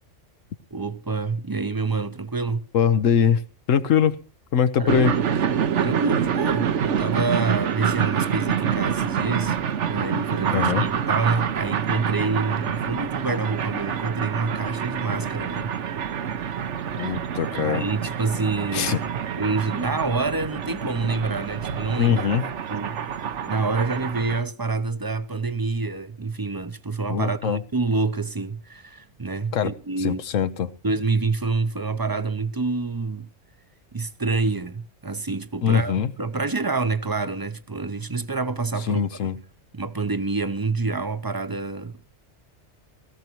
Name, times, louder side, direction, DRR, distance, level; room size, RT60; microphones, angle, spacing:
voice 1, 0.7-2.6 4.8-5.0 5.8-9.6 9.9-15.7 17.0-17.1 17.6-22.4 22.7-30.2 30.8-33.3 33.9-39.1 39.7-42.1, right 3 dB, 25° right, 0.6 m, -27 dB
voice 2, 2.7-3.4 3.7-4.2 4.5-5.1 10.5-10.8 17.0-17.8 18.7-19.0 22.0-22.4 27.1-27.6 29.5-29.7 30.0-30.7 35.6-36.1 38.9-39.4, left 8 dB, 85° left, 1.2 m, -22 dB
sound 1, 4.9-24.4, right 8 dB, 70° right, 1.2 m, -27 dB
17.5 x 15.0 x 3.0 m
omnidirectional pair, 1.3 m